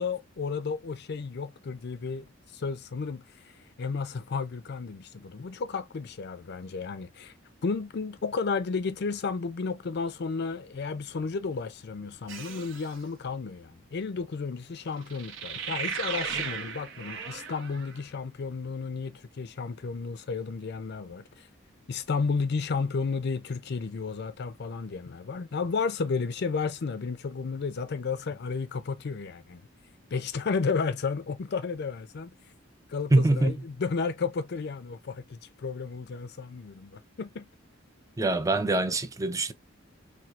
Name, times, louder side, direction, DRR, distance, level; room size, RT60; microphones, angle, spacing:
voice 1, 0.0-3.2 3.8-7.3 7.6-21.5 21.9-29.6 30.1-32.3 32.9-37.5, left 4 dB, 55° left, 0.5 m, -32 dB
sound 1, 12.3-13.0 15.1-18.0, right 6 dB, 70° right, 0.7 m, -36 dB
voice 2, 33.1-33.6 38.2-39.5, right 2 dB, 15° right, 0.4 m, -24 dB
4.3 x 2.3 x 2.3 m
head